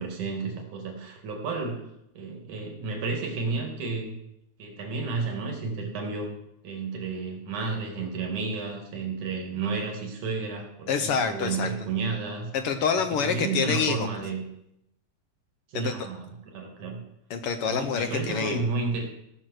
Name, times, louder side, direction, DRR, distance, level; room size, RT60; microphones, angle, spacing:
voice 1, 0.0-1.8 2.2-4.2 4.6-6.3 6.6-12.5 13.2-14.4 15.7-17.0 17.7-19.0, right 4 dB, 85° right, 1 dB, 3.6 m, -31 dB
voice 2, 10.9-11.7 12.5-14.1 15.7-16.1 17.3-18.7, left 6 dB, 75° left, 9 dB, 1.3 m, -27 dB
16.5 x 6.2 x 6.4 m, 0.81 s
omnidirectional pair, 3.4 m